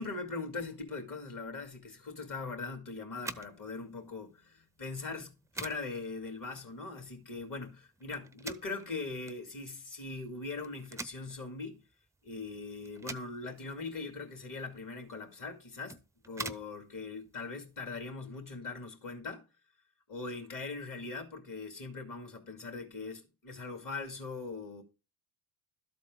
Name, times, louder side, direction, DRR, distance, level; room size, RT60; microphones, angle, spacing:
voice 1, 0.0-11.8 12.2-19.4 20.1-24.8, left 3 dB, 40° left, 2.3 m, -41 dB
sound 1, 3.1-18.1, right 2 dB, 5° right, 0.5 m, -48 dB
12.5 x 4.2 x 3.7 m
supercardioid pair, 60°, 49 cm